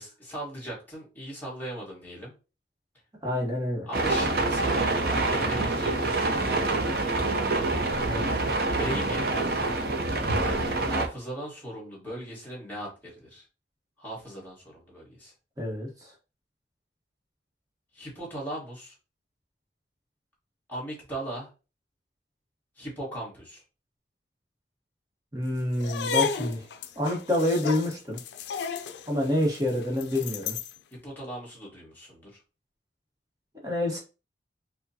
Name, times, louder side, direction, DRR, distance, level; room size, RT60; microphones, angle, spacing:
voice 1, 0.0-2.3 3.9-6.8 8.7-9.3 10.8-13.4 14.0-15.3 17.9-18.9 20.7-21.5 22.8-23.6 30.9-32.4, right 1 dB, 10° left, -5 dB, 1.5 m, -38 dB
voice 2, 3.2-3.9 8.1-8.5 15.6-16.1 25.3-26.6 27.0-28.2 29.1-30.6 33.6-34.0, left 1 dB, 20° right, -1 dB, 1.0 m, -28 dB
sound 1, 3.9-11.1, right 2 dB, 55° right, 0.6 m, -26 dB
sound 2, 25.8-30.8, left 5 dB, 80° left, 0.4 m, -33 dB
4.7 x 2.2 x 2.7 m, 0.32 s
head